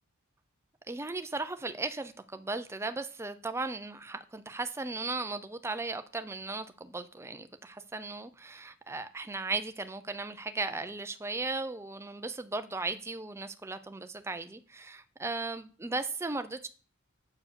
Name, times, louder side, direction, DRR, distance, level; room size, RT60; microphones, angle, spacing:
voice 1, 0.9-16.7, right 3 dB, 10° right, 0.5 m, -36 dB
7.1 x 4.7 x 6.7 m
head